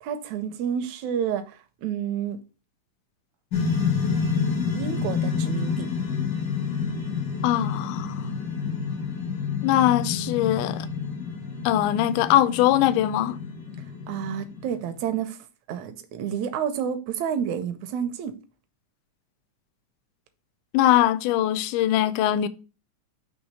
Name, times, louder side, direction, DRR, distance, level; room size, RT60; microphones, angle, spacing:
voice 1, 0.0-2.4 4.8-5.9 14.1-15.4 15.7-18.4, right 8 dB, 75° right, 1.8 m, -29 dB
sound 1, 3.5-14.9, left 6 dB, 65° left, 1.0 m, -29 dB
voice 2, 7.4-8.2 9.6-10.9 11.7-13.4 20.7-22.5, left 12 dB, 80° left, 1.9 m, -21 dB
6.3 x 3.1 x 5.3 m
omnidirectional pair, 3.9 m